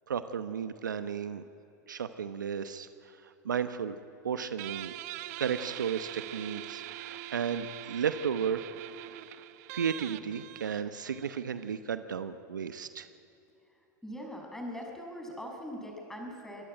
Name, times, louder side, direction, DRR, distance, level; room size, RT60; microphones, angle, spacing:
voice 1, 0.1-1.4 1.9-2.9 3.4-4.0 4.2-4.9 5.4-8.6 9.7-13.1, right 7 dB, 85° right, 11 dB, 1.0 m, -33 dB
Guitar, 4.6-11.8, right 14 dB, 60° right, 1.0 m, -43 dB
voice 2, 14.0-16.6, equal, 5° left, 1 dB, 6.7 m, -41 dB
25.5 x 20.0 x 9.2 m, 2.8 s
hypercardioid pair, 95°, 10 cm